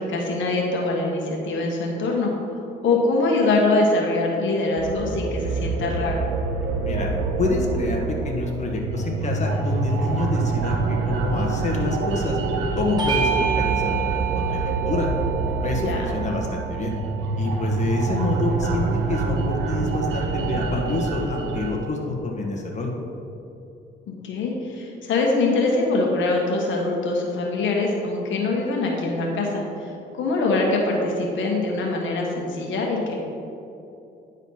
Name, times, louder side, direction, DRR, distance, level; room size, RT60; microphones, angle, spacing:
voice 1, 0.0-2.3 2.8-6.3 15.8-16.0 24.2-33.1, left 2 dB, 75° left, -1 dB, 1.3 m, -23 dB
sound 1, 4.8-21.8, right 3 dB, 85° right, 0.9 m, -26 dB
voice 2, 7.4-12.4 12.7-15.1 15.6-16.9 17.4-22.9, left 2 dB, 35° left, -1 dB, 1.4 m, -27 dB
Bell / Doorbell, 13.0-17.8, right 8 dB, 20° right, 1.5 m, -29 dB
10.0 x 4.1 x 5.6 m, 2.7 s
cardioid pair, 90°, 20 cm